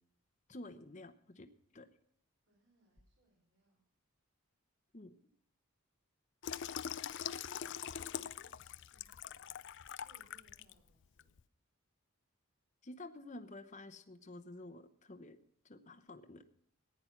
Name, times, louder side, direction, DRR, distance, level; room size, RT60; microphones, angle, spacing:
voice 1, 0.5-1.5 1.7-1.9 4.9-5.1 12.8-15.4 15.6-16.4, left 2 dB, 35° left, 7 dB, 0.9 m, -50 dB
voice 2, 2.5-3.8 7.6-9.5 10.0-11.4, right 1 dB, 65° right, -1 dB, 4.4 m, -71 dB
Water tap faucet / Sink (filling or washing), 6.4-10.7 11.2-11.4, left 8 dB, 55° left, 0.5 m, -43 dB
15.0 x 9.7 x 5.9 m, 0.67 s
head